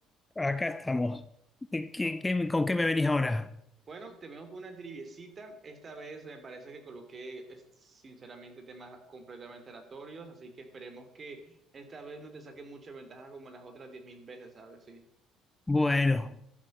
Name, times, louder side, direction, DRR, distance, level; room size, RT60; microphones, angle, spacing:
voice 1, 0.4-1.2 1.7-3.5 15.7-16.4, left 2 dB, 15° left, 0.6 m, -28 dB
voice 2, 3.9-15.0, right 3 dB, 35° right, 2.9 m, -46 dB
12.5 x 7.4 x 7.7 m
cardioid pair, 95°, 0 cm